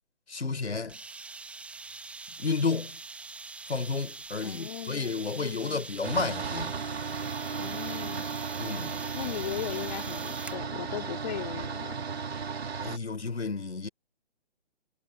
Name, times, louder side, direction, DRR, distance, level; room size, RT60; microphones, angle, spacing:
voice 1, 0.3-1.0 2.4-3.0 3.7-6.7 8.6-9.0 12.8-13.9, left 4 dB, 80° left, 5.9 m, -31 dB
sound 1, 0.9-10.6, right 3 dB, 5° right, 1.5 m, -43 dB
voice 2, 4.4-5.8 7.6-8.3 9.2-12.0, left 12 dB, 35° left, 2.3 m, -38 dB
sound 2, 6.0-13.0, right 5 dB, 70° right, 2.6 m, -35 dB
figure-of-eight pair, 145°, 33 cm